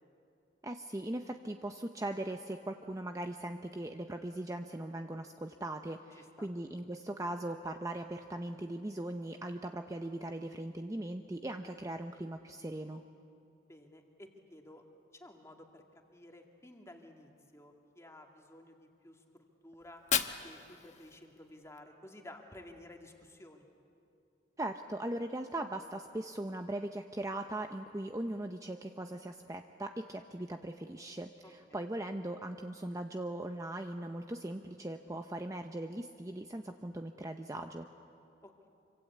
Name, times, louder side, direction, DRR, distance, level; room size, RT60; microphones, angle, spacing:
voice 1, 0.6-13.0 24.6-37.9, right 1 dB, 20° right, 5 dB, 0.7 m, -39 dB
voice 2, 6.1-6.5 13.7-14.8 15.1-15.8 16.1-20.0 20.4-23.7 31.4-31.5 38.4-38.7, left 1 dB, 15° left, 2 dB, 2.1 m, -54 dB
Fire, 19.8-21.8, left 8 dB, 40° left, 0.9 m, -36 dB
26.5 x 24.5 x 8.5 m, 2.6 s
head